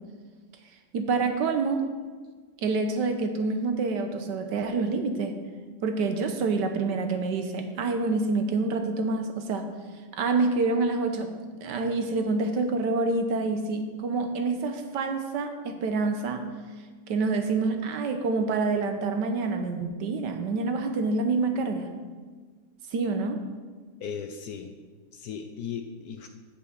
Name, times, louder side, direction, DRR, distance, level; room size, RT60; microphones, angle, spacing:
voice 1, 0.9-1.9 2.6-5.3 5.8-9.7 10.1-16.4 17.1-21.9 22.9-23.4, right 3 dB, 70° right, 6 dB, 1.4 m, -27 dB
voice 2, 24.0-24.7 25.1-26.3, left 7 dB, 65° left, 6 dB, 1.0 m, -36 dB
8.3 x 6.1 x 7.6 m, 1.5 s
omnidirectional pair, 2.0 m